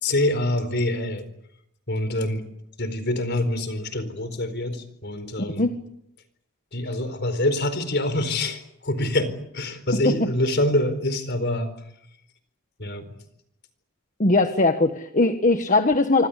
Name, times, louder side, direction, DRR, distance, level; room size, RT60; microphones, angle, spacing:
voice 1, 0.0-1.2 1.9-2.4 2.8-5.7 6.7-11.7 12.8-13.0, left 1 dB, 55° left, 12 dB, 4.4 m, -25 dB
voice 2, 14.2-16.3, left 2 dB, 40° left, 8 dB, 1.5 m, -20 dB
27.0 x 25.0 x 8.4 m, 0.79 s
head